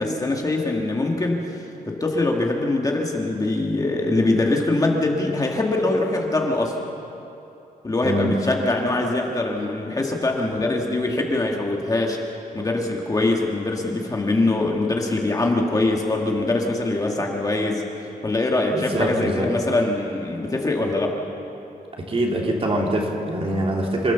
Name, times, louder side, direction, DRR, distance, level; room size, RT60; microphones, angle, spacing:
voice 1, 0.0-1.5 1.9-6.9 7.8-12.2 12.5-17.9 18.2-21.2, left 2 dB, 25° left, 0 dB, 1.9 m, -23 dB
voice 2, 18.7-19.5 22.0-24.1, right 1 dB, 40° right, 0 dB, 3.0 m, -24 dB
27.5 x 14.0 x 7.0 m, 2.9 s
wide cardioid pair, 150°, 15 cm